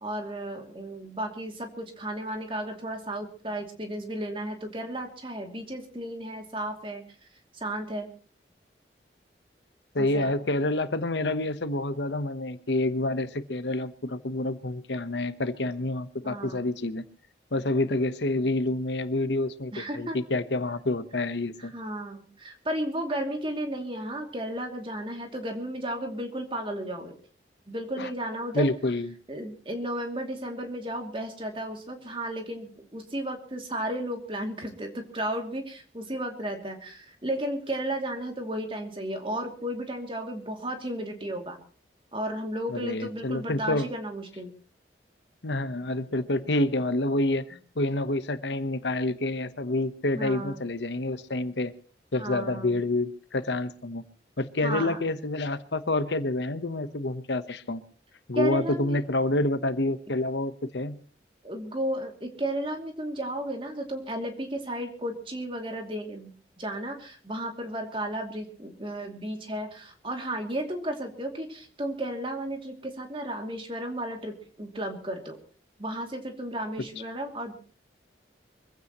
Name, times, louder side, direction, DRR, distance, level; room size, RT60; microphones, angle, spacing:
voice 1, 0.0-7.0 7.5-8.1 10.0-10.3 16.2-16.6 19.7-20.2 21.6-27.2 27.7-28.7 29.3-41.6 42.1-44.5 50.1-50.6 52.2-52.8 54.6-55.0 58.3-59.0 61.4-66.3 66.6-75.4 75.8-77.5, right 1 dB, 30° right, 3 dB, 2.6 m, -34 dB
voice 2, 9.9-17.0 17.5-21.7 28.0-28.1 28.5-29.2 42.7-43.9 45.4-51.7 52.1-54.0 54.4-57.8 58.3-61.0, left 2 dB, 90° left, 12 dB, 1.1 m, -28 dB
24.0 x 16.0 x 3.1 m, 0.39 s
head